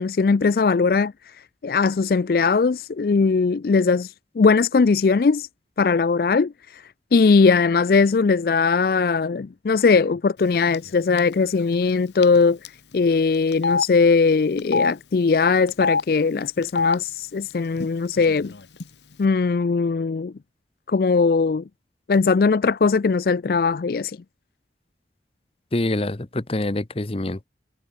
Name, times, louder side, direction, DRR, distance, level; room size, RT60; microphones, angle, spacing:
voice 1, 0.0-5.5 5.8-6.8 7.1-12.6 12.9-18.5 19.2-20.3 20.9-21.6 22.1-24.2, left 4 dB, 55° left, 0.4 m, -20 dB
Telephone, 10.7-10.9 11.2-11.3 12.2-12.4 12.6-12.7 13.5-13.8 14.6-14.9 15.7-16.0 16.6-17.0 17.8-17.9 18.2-18.8, left 4 dB, 80° left, 1.1 m, -23 dB
voice 2, 25.7-27.5, left 1 dB, 30° left, 0.9 m, -25 dB
head